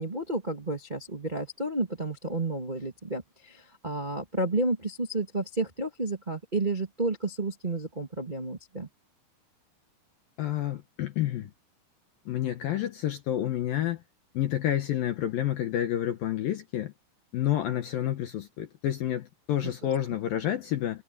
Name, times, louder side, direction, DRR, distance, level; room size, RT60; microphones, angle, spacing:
voice 1, 0.0-8.9 19.6-19.7, right 2 dB, 45° right, 0.6 m, -31 dB
voice 2, 10.4-11.5 12.3-14.0 14.3-16.9 17.3-21.0, left 12 dB, 75° left, 2.1 m, -29 dB
omnidirectional pair, 5.7 m